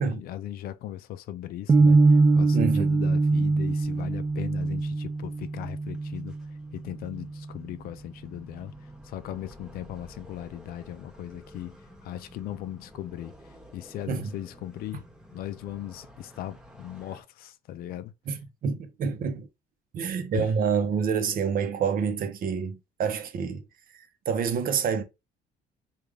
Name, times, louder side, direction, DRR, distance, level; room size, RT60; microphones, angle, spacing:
voice 1, 0.0-15.0 15.3-18.1 20.3-20.5, left 12 dB, 65° left, 0.4 m, -38 dB
sound 1, 1.7-7.8, right 3 dB, 20° right, 0.3 m, -23 dB
voice 2, 2.5-2.9 14.1-14.3 18.3-19.5 19.9-23.6 23.9-25.0, right 6 dB, 55° right, 0.7 m, -27 dB
sound 2, 3.7-17.2, equal, 5° right, 1.0 m, -52 dB
3.4 x 2.4 x 3.2 m
cardioid pair, 110°, 17 cm